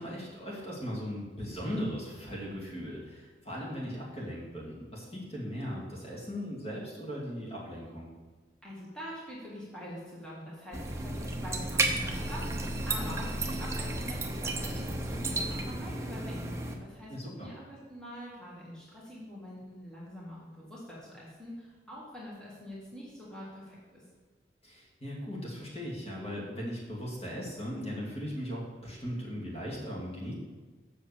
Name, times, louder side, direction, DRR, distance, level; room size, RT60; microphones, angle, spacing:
voice 1, 0.0-8.1 17.1-17.5 24.6-30.3, equal, 30° left, -5 dB, 2.4 m, -38 dB
voice 2, 8.6-24.0, equal, 5° left, -7 dB, 2.2 m, -45 dB
sound 1, 10.7-16.7, right 2 dB, 15° right, 0.8 m, -33 dB
7.8 x 6.4 x 7.0 m, 1.3 s
head